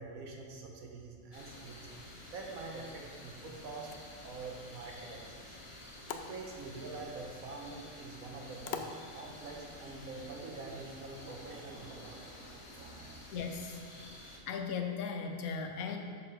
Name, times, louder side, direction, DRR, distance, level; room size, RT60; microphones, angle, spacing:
voice 1, 0.0-1.9 2.3-3.9 4.2-5.6 6.1-8.8 9.1-13.2, right 3 dB, 75° right, 0 dB, 1.5 m, -45 dB
sound 1, 1.3-14.4, left 1 dB, 25° left, 0.9 m, -51 dB
sound 2, 3.6-9.6, left 6 dB, 65° left, 0.7 m, -48 dB
voice 2, 13.3-13.8 14.5-16.0, left 5 dB, 90° left, 4 dB, 1.3 m, -37 dB
6.9 x 5.9 x 5.1 m, 2.2 s
omnidirectional pair, 1.5 m